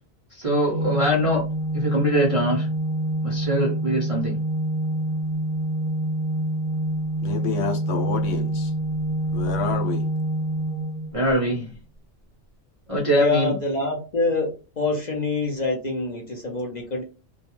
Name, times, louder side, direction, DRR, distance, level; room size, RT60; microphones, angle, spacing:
voice 1, 0.3-1.4 1.7-2.7 3.2-4.4 11.1-11.7 12.9-13.5, right 1 dB, 45° right, 0.4 m, -22 dB
Organ, 0.7-11.6, right 1 dB, 90° left, 1.2 m, -26 dB
voice 2, 7.2-8.7 9.3-10.1, left 6 dB, 75° left, 0.9 m, -29 dB
voice 3, 13.1-14.5 14.8-17.0, left 3 dB, 50° left, 0.5 m, -25 dB
2.2 x 2.2 x 2.9 m
omnidirectional pair, 1.3 m